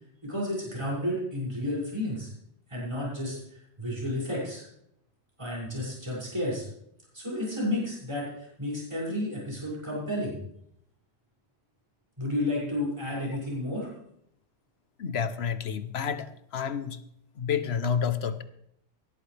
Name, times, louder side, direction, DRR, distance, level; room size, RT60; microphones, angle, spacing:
voice 1, 0.2-2.3 2.7-4.6 5.4-6.7 7.1-10.4 12.2-13.9, left 1 dB, 30° right, -7 dB, 6.6 m, -31 dB
voice 2, 15.0-16.3 16.5-17.0 17.4-18.4, left 7 dB, 80° left, 12 dB, 1.2 m, -29 dB
17.5 x 13.0 x 3.4 m, 0.75 s
omnidirectional pair, 1.1 m